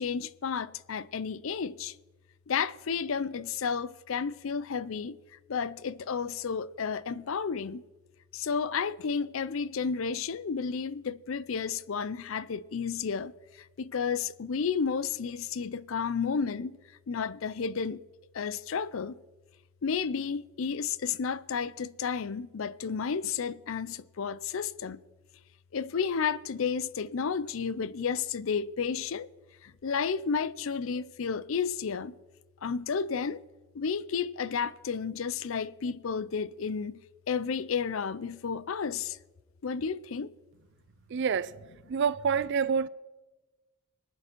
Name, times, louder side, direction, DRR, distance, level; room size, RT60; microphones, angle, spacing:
voice 1, 0.0-2.0 2.5-5.2 5.5-7.8 8.3-16.8 17.1-18.0 18.3-19.2 19.8-25.0 25.7-29.3 29.6-32.1 32.6-33.4 33.7-37.0 37.3-39.2 39.6-40.3, left 6 dB, 65° left, 0.5 m, -32 dB
voice 2, 41.1-41.5 41.9-42.9, right 6 dB, 55° right, 0.4 m, -27 dB
24.5 x 9.2 x 4.5 m
head